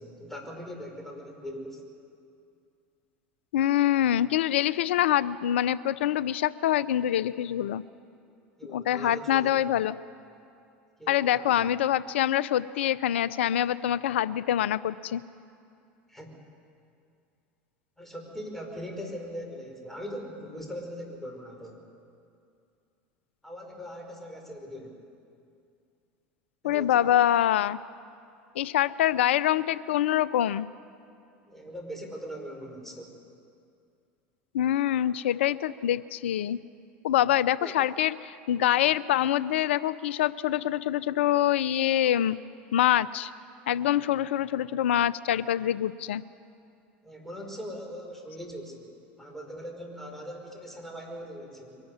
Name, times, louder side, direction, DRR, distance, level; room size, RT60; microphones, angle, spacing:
voice 1, 0.0-1.8 8.6-9.6 11.0-11.7 16.1-16.4 18.0-21.8 23.4-25.0 26.6-27.0 31.5-33.1 37.6-37.8 47.0-48.9 49.2-51.8, equal, 5° left, 1 dB, 5.1 m, -40 dB
voice 2, 3.5-7.8 8.7-9.9 11.1-15.2 26.6-27.8 28.6-30.7 34.5-36.6 37.0-42.4 42.7-43.3 43.7-46.2, left 12 dB, 80° left, 18 dB, 0.5 m, -25 dB
23.0 x 13.0 x 9.8 m, 2.5 s
hypercardioid pair, 85°, 6 cm